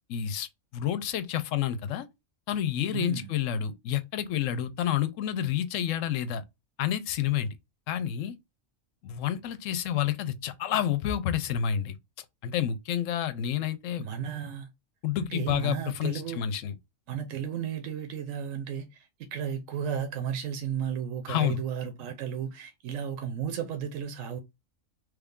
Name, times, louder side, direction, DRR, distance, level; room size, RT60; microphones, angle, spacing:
voice 1, 0.1-2.1 2.5-6.4 6.8-7.5 7.9-8.3 9.0-12.0 12.4-14.0 15.0-16.7 21.3-21.6, left 10 dB, 70° left, 0.9 m, -29 dB
voice 2, 2.9-3.3 14.0-14.7 15.2-16.4 17.1-24.4, right 8 dB, 75° right, 1.0 m, -34 dB
3.2 x 2.4 x 3.5 m
omnidirectional pair, 1.4 m